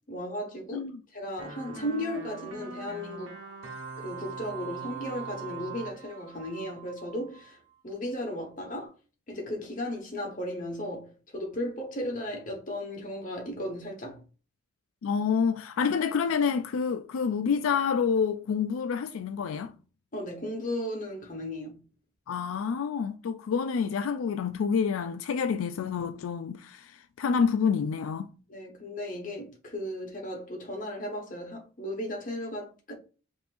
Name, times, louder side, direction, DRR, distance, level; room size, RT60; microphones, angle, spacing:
voice 1, 0.1-3.4 4.0-7.6 7.8-8.9 9.3-14.2 20.1-21.8 28.5-32.9, left 1 dB, 40° left, 1.3 m, -35 dB
sound 1, 1.4-7.5, right 5 dB, 70° right, 1.1 m, -41 dB
voice 2, 15.0-19.7 22.3-28.3, left 6 dB, 85° left, 0.3 m, -28 dB
5.2 x 3.0 x 2.5 m
head